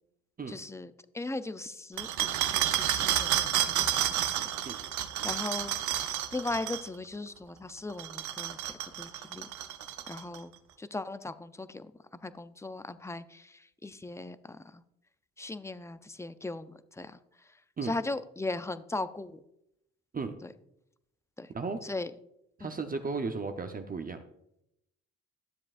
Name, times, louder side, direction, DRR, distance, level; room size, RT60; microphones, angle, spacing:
voice 1, 0.5-4.4 5.2-9.5 10.1-10.5 10.8-11.9 12.2-14.8 15.4-16.7 17.0-17.2 17.8-19.4 20.4-20.5 21.4-21.5 21.8-22.1 22.6-22.7, left 2 dB, 10° left, 13 dB, 0.4 m, -38 dB
sound 1, 2.0-6.9 7.9-10.4, right 11 dB, 70° right, 0.8 m, -30 dB
voice 2, 22.6-24.2, right 4 dB, 30° right, 6 dB, 0.7 m, -34 dB
12.5 x 7.3 x 2.5 m, 0.80 s
cardioid pair, 90°, 30 cm